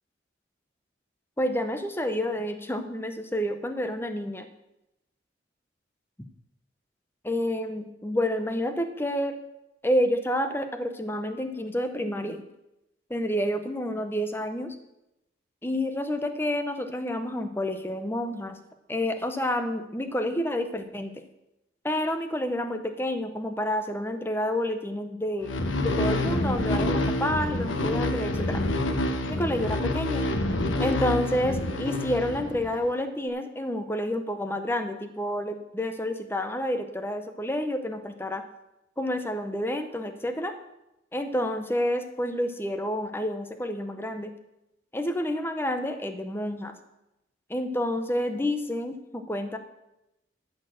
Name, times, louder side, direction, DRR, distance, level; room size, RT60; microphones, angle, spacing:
voice 1, 1.4-4.5 7.2-9.4 9.8-12.4 13.1-14.7 15.6-18.6 18.9-21.1 21.8-28.6 29.3-30.3 30.8-38.4 39.0-40.5 41.1-44.3 44.9-46.7 47.5-49.6, left 1 dB, 10° left, 8 dB, 0.7 m, -29 dB
sound 1, 25.4-32.9, left 1 dB, 80° left, 1.0 m, -27 dB
13.0 x 4.5 x 7.6 m, 0.91 s
head